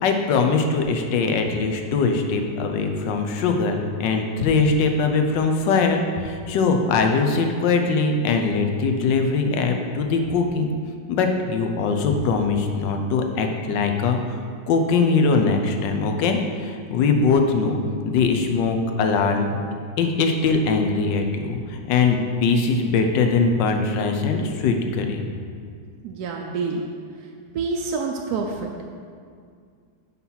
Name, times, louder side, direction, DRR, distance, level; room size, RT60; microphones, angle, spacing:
voice 1, 0.0-10.7 11.1-14.2 14.7-17.8 18.0-19.6 20.0-25.3, left 4 dB, 75° left, 4 dB, 1.3 m, -21 dB
voice 2, 26.0-26.8 27.5-28.7, right 4 dB, 70° right, 1 dB, 0.9 m, -27 dB
5.9 x 5.8 x 5.5 m, 2.2 s
omnidirectional pair, 2.1 m